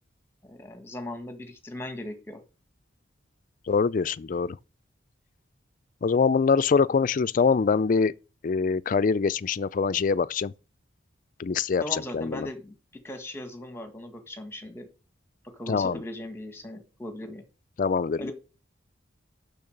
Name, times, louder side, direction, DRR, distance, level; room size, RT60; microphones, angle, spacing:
voice 1, 0.5-2.4 11.8-12.7 13.0-14.9 15.5-17.4 18.2-18.3, left 1 dB, 15° left, 1.6 m, -38 dB
voice 2, 3.7-4.6 6.0-8.1 8.4-10.5 11.4-12.5 15.7-16.0 17.8-18.3, left 5 dB, 45° left, 0.4 m, -24 dB
6.9 x 6.3 x 6.6 m
head